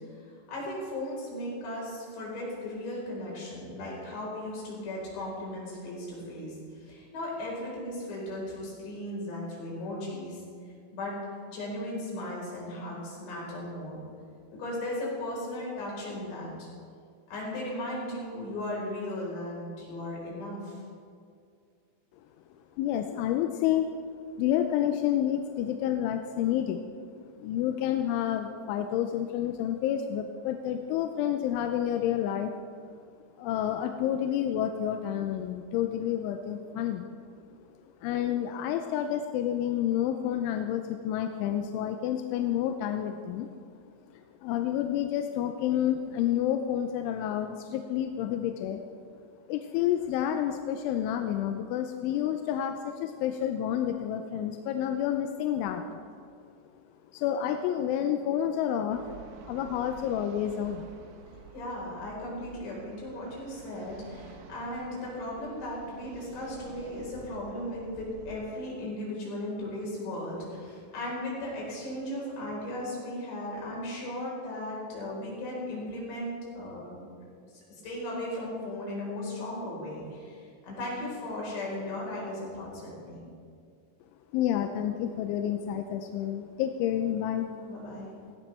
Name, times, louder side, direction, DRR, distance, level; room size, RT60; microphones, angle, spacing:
voice 1, 0.2-10.4 10.9-11.2 11.5-14.0 14.6-16.7 17.3-20.8 61.5-83.2 87.7-88.1, left 1 dB, 65° left, -4 dB, 6.4 m, -36 dB
voice 2, 22.8-23.9 24.4-26.9 27.4-32.5 33.4-37.1 38.0-43.5 44.4-48.8 49.5-56.1 57.1-60.9 84.3-87.5, left 10 dB, 85° left, 5 dB, 3.1 m, -29 dB
sound 1, 58.9-68.4, right 6 dB, 75° right, 2.5 m, -50 dB
18.0 x 17.0 x 3.4 m, 2.3 s
omnidirectional pair, 5.5 m